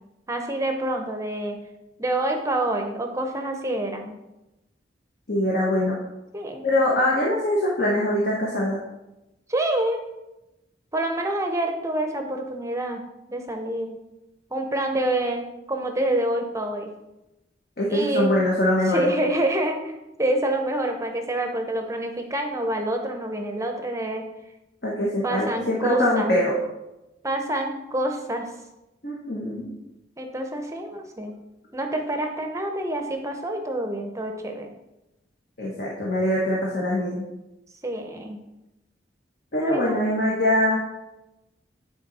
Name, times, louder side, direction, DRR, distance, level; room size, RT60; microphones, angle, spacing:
voice 1, 0.3-1.6 2.0-4.1 6.3-6.7 9.5-10.1 10.9-13.0 13.3-14.0 14.5-16.9 17.9-18.3 18.8-24.3 25.2-26.4 27.2-28.5 30.2-31.3 31.7-34.7 37.8-38.4 39.6-40.2, right 1 dB, 15° right, 4 dB, 0.7 m, -27 dB
voice 2, 5.3-6.0 6.6-8.8 17.8-19.1 24.8-26.5 29.0-29.7 35.6-37.2 39.5-40.8, left 1 dB, 55° left, -4 dB, 1.3 m, -23 dB
9.5 x 4.1 x 4.1 m, 0.94 s
head